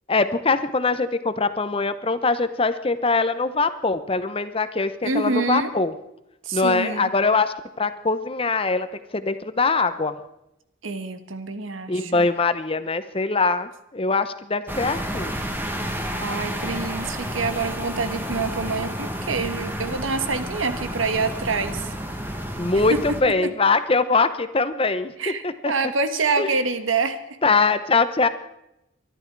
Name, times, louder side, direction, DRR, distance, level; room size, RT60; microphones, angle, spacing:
voice 1, 0.1-5.9 6.5-8.9 9.1-10.2 11.9-15.4 22.6-25.7 26.4-26.5 27.4-28.3, left 3 dB, 30° left, 12 dB, 0.8 m, -22 dB
voice 2, 5.0-5.7 6.4-7.1 10.8-12.3 16.2-21.9 22.7-23.0 23.4-23.5 25.2-27.4, right 4 dB, 80° right, 10 dB, 1.4 m, -26 dB
sound 1, 14.7-23.2, equal, 10° right, 1.5 m, -30 dB
24.0 x 11.5 x 4.7 m, 0.85 s
head